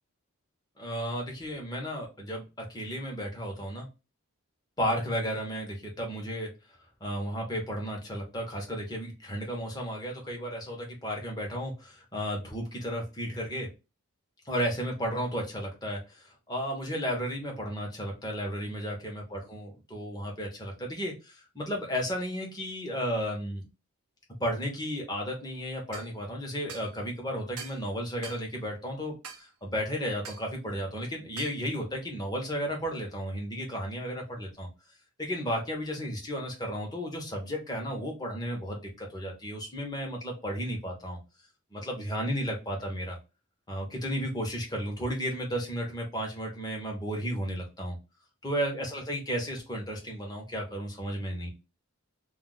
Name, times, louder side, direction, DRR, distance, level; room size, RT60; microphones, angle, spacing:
voice 1, 0.8-3.9 4.8-6.5 7.0-13.7 14.4-23.6 24.4-34.7 35.2-41.2 41.7-43.2 43.7-47.9 48.4-51.5, equal, 15° left, 0 dB, 0.8 m, -33 dB
sound 1, 25.9-26.1 26.7-26.9 27.6-27.8 28.2-28.4 29.2-29.4 30.2-30.5 31.4-31.6, right 7 dB, 85° right, 0.6 m, -43 dB
2.4 x 2.2 x 3.8 m, 0.28 s
head